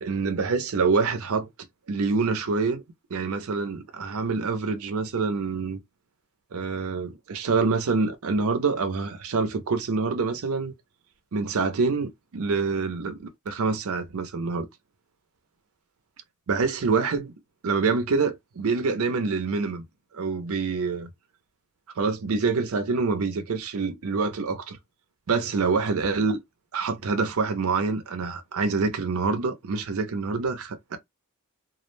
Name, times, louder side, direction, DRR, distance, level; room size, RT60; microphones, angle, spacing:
voice 1, 0.0-1.5 1.9-2.8 3.1-5.8 6.5-10.7 11.3-14.7 16.5-17.3 17.6-19.8 20.1-21.1 22.0-24.8 25.3-26.4 26.7-31.0, right 4 dB, 70° right, 0.5 m, -26 dB
2.3 x 2.0 x 3.0 m
head